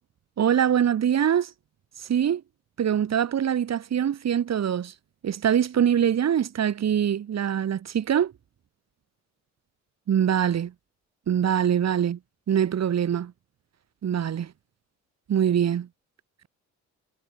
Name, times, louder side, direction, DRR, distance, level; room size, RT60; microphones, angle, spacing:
voice 1, 0.4-1.5 2.0-2.4 2.8-4.9 5.2-8.3 10.1-10.7 11.3-12.2 12.5-13.3 14.0-14.5 15.3-15.9, right 9 dB, 60° right, 6.7 m, -23 dB
cardioid pair, 90°, 30 cm